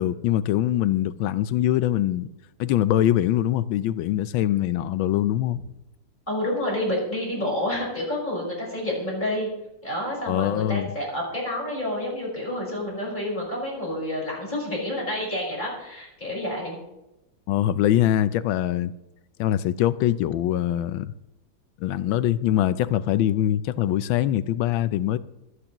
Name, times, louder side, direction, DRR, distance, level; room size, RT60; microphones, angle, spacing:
voice 1, 0.0-2.3 2.6-5.6 10.3-10.9 17.5-18.9 19.4-21.1 21.8-25.2, left 12 dB, 90° left, 1.4 m, -23 dB
voice 2, 6.3-9.5 9.8-16.8, left 1 dB, 20° left, 5.1 m, -29 dB
24.5 x 9.7 x 3.0 m
omnidirectional pair, 2.1 m